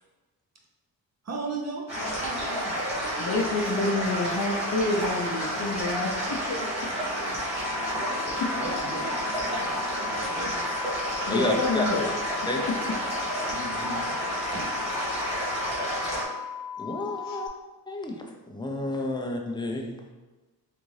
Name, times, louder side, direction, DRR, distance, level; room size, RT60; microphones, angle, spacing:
voice 1, 1.2-2.7 3.0-3.5 7.0-7.4 7.9-8.1 8.5-10.7 13.5-14.0 14.5-15.1, right 3 dB, 45° right, -1 dB, 0.6 m, -38 dB
sound 1, 1.9-16.2, equal, 15° right, 1.4 m, -30 dB
Wind instrument woodwind instrument, 3.2-6.9, left 8 dB, 80° left, 0.9 m, -50 dB
voice 2, 3.2-6.8 8.4-8.5 11.3-12.1 17.3-17.4, left 2 dB, 60° left, 0 dB, 0.6 m, -28 dB
sound 2, 7.5-17.5, left 8 dB, 85° right, 0.7 m, -37 dB
voice 3, 11.3-11.8 12.5-12.6 16.8-17.5 17.9-18.2 18.5-20.1, left 2 dB, 10° left, 1 dB, 0.4 m, -30 dB
3.6 x 2.5 x 3.1 m, 1.2 s
wide cardioid pair, 105°, 38 cm